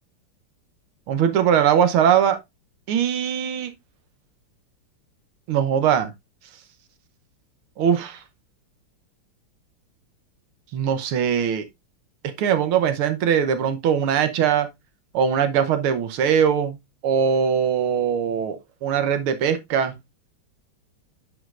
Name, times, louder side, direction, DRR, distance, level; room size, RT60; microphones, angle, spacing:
voice 1, 1.1-2.4 2.9-3.7 5.5-6.1 7.8-8.2 10.7-11.7 12.4-14.7 15.1-16.8 17.0-19.9, right 8 dB, 75° right, 1.8 m, -21 dB
9.4 x 5.2 x 2.4 m
omnidirectional pair, 2.4 m